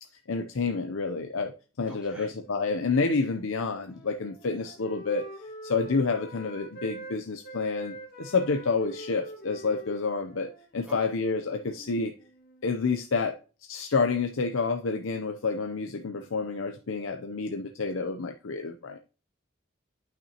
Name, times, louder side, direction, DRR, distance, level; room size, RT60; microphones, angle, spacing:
voice 1, 0.3-1.5 1.8-5.3 5.6-12.1 12.6-13.4 13.7-19.0, left 4 dB, 85° left, 5 dB, 0.7 m, -29 dB
voice 2, 1.9-2.3 4.5-4.7 10.8-11.2, right 2 dB, 5° right, -5 dB, 4.6 m, -47 dB
Wind instrument woodwind instrument, 2.2-7.1 7.4-12.7, equal, 50° left, 1.9 m, -46 dB
11.0 x 6.0 x 2.9 m, 0.35 s
head